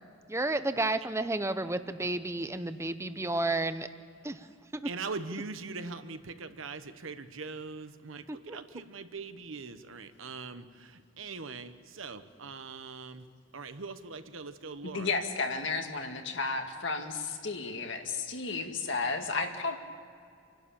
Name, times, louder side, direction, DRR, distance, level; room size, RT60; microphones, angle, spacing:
voice 1, 0.3-3.9 4.2-4.5 4.7-4.9 8.3-8.6, right 2 dB, 15° right, 10 dB, 0.8 m, -31 dB
voice 2, 4.8-13.3 13.5-15.1, right 4 dB, 80° right, 10 dB, 1.2 m, -41 dB
voice 3, 14.8-19.8, left 4 dB, 65° left, 4 dB, 2.1 m, -33 dB
27.5 x 12.0 x 8.7 m, 2.3 s
head